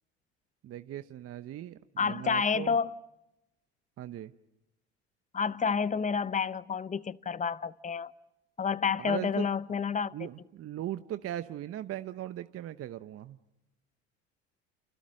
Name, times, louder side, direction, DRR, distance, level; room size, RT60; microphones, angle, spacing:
voice 1, 0.6-2.8 4.0-4.3 9.0-9.5 10.1-13.4, right 12 dB, 40° right, 1.0 m, -39 dB
voice 2, 2.0-2.9 5.3-8.1 8.6-10.3, left 6 dB, 20° left, 0.9 m, -29 dB
30.0 x 29.5 x 6.5 m
hypercardioid pair, 75°, 34 cm